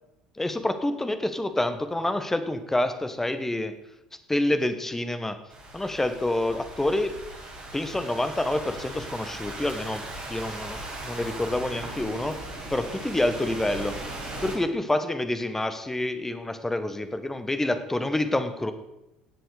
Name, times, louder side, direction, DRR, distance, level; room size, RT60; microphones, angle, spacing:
voice 1, 0.4-3.7 4.3-5.4 5.7-7.1 7.7-12.4 12.7-14.0 14.4-18.7, left 1 dB, 10° left, 9 dB, 1.3 m, -27 dB
Thunderstorm / Rain, 5.5-14.5, right 2 dB, 35° right, 5.0 m, -38 dB
17.5 x 7.7 x 5.1 m, 0.89 s
figure-of-eight pair, 65°, 4 cm